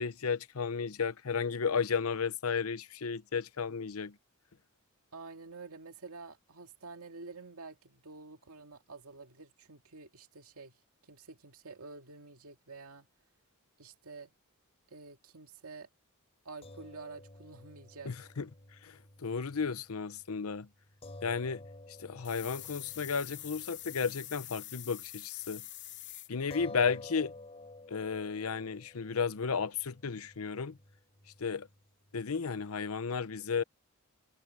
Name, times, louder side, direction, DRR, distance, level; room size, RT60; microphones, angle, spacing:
voice 1, 0.0-4.1 18.1-18.5 18.8-18.9 19.2-20.7 21.2-21.6 22.0-25.6 26.3-27.3 27.9-30.8 31.4-31.7 32.1-33.6, left 5 dB, 80° left, 0.8 m, -33 dB
voice 2, 5.1-10.8 11.1-13.1 13.8-14.3 14.9-15.9 16.4-18.3, right 4 dB, 85° right, 2.2 m, -49 dB
sound 1, 16.6-25.1 25.4-25.6 26.5-33.0, left 2 dB, 30° left, 3.2 m, -52 dB
sound 2, 22.2-26.3, left 14 dB, 55° left, 3.1 m, -45 dB
head